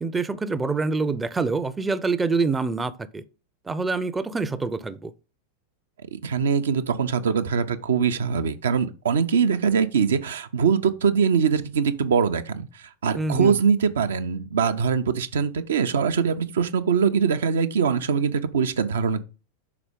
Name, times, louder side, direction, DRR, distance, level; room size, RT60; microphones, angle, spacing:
voice 1, 0.0-3.2 3.7-5.1 13.1-13.6, right 4 dB, 10° right, 0.5 m, -26 dB
voice 2, 6.1-19.2, right 6 dB, 65° right, 0.6 m, -23 dB
5.9 x 4.2 x 5.0 m
figure-of-eight pair, 90°, 0 cm